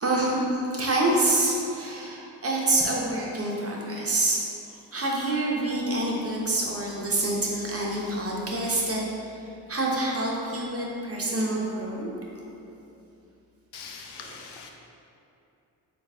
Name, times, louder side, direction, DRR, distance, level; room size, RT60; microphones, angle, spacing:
voice 1, 0.0-4.4 4.7-9.0 9.7-12.1 14.1-14.4, right 2 dB, 35° right, -3 dB, 0.8 m, -27 dB
voice 2, 13.7-14.7, left 5 dB, 80° left, 2 dB, 0.5 m, -42 dB
3.8 x 2.4 x 3.5 m, 2.7 s
cardioid pair, 50°, 40 cm